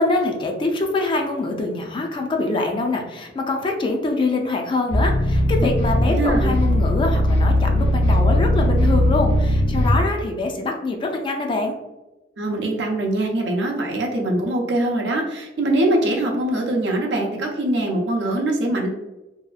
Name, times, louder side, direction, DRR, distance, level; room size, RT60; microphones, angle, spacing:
voice 1, 0.0-11.8, left 2 dB, 25° left, 3 dB, 0.3 m, -24 dB
sound 1, 4.9-10.0, left 1 dB, 80° left, 0.9 m, -19 dB
voice 2, 6.1-6.5 12.4-18.9, right 1 dB, 70° right, 1 dB, 0.5 m, -22 dB
2.7 x 2.3 x 2.3 m, 1.0 s
head